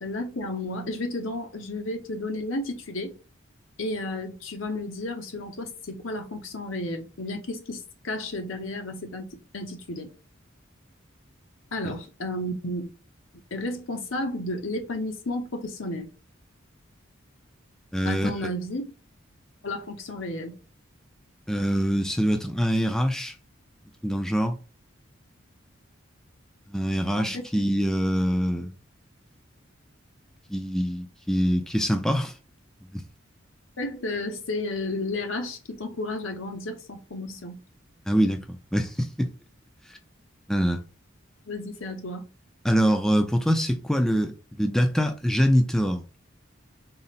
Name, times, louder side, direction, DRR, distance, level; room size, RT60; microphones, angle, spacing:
voice 1, 0.0-3.1 3.8-10.1 11.7-12.9 13.5-16.1 18.0-18.9 19.6-20.6 27.2-27.4 33.8-37.6 41.5-42.3, left 2 dB, 75° left, 0.9 m, -32 dB
voice 2, 17.9-18.5 21.5-23.3 24.0-24.6 26.7-28.7 30.5-32.3 32.9-33.0 38.1-39.3 39.9-40.0 40.5-40.8 42.6-46.0, equal, 5° left, 0.4 m, -24 dB
3.9 x 2.1 x 4.0 m
head